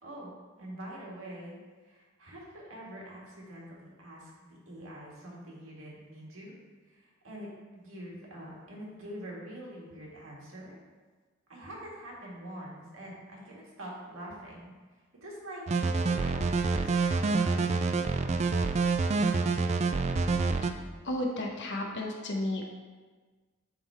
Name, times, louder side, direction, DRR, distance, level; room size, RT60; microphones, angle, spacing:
voice 1, 0.0-0.3 0.6-1.6 1.8-6.5 6.9-7.5 7.7-10.8 11.5-14.7 15.2-17.9, right 1 dB, 85° right, -4 dB, 1.7 m, -45 dB
sound 1, 15.7-20.7, right 4 dB, 35° right, 0.3 m, -27 dB
voice 2, 21.0-22.7, left 1 dB, 60° left, 0 dB, 1.0 m, -33 dB
8.6 x 3.7 x 3.4 m, 1.4 s
head